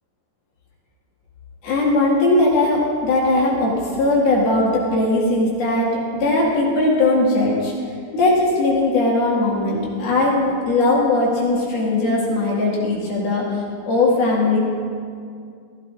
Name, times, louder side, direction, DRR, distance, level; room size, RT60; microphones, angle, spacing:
voice 1, 1.6-7.7 8.1-14.6, left 2 dB, 60° left, -5 dB, 3.5 m, -19 dB
17.0 x 15.5 x 2.6 m, 2.3 s
omnidirectional pair, 5.7 m